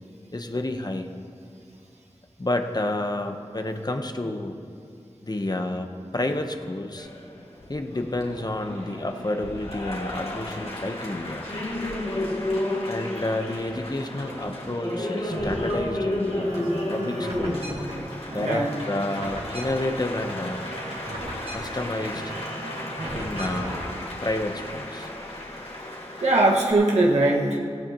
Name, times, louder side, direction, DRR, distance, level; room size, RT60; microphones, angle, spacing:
voice 1, 0.3-1.1 2.4-4.6 5.2-5.9 6.1-7.1 7.7-11.5 12.9-17.6 18.3-20.6 21.5-22.3 23.1-23.8 24.2-25.1, left 1 dB, 40° left, 5 dB, 1.0 m, -30 dB
Applause, 7.0-26.7, left 1 dB, 60° left, 2.3 m, -33 dB
sound 1, 8.7-10.2 10.6-12.2 12.5-13.8 14.1-24.0, right 1 dB, 65° right, 2.3 m, -38 dB
voice 2, 18.4-18.7 26.2-27.6, right 2 dB, 85° right, -2 dB, 1.7 m, -20 dB
17.0 x 15.5 x 3.0 m, 2.4 s
wide cardioid pair, 45°, 11 cm